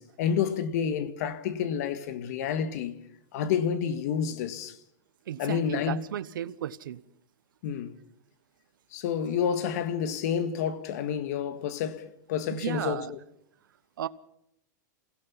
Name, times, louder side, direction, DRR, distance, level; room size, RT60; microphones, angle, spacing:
voice 1, 0.0-3.0 3.3-4.8 5.4-6.1 7.6-8.0 8.9-13.2, left 7 dB, 55° left, 1.8 m, -29 dB
voice 2, 5.3-7.0 12.5-13.1 14.0-14.1, right 10 dB, 90° right, 1.0 m, -34 dB
28.0 x 16.5 x 5.7 m
supercardioid pair, 160°, 11 cm